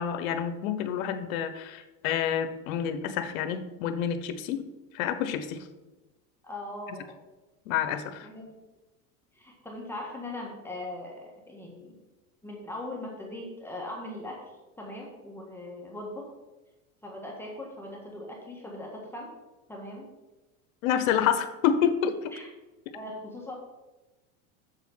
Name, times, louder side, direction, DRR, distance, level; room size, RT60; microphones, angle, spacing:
voice 1, 0.0-4.6 4.9-5.6 7.7-8.3 20.8-22.3, left 8 dB, 75° left, 10 dB, 1.1 m, -28 dB
voice 2, 6.4-7.2 8.2-8.6 9.3-12.0 12.4-16.3 17.0-19.3 19.7-20.1 22.3-22.4 22.9-23.7, left 1 dB, 5° left, -2 dB, 1.6 m, -40 dB
7.2 x 7.0 x 5.7 m, 1.1 s
supercardioid pair, 130°, 41 cm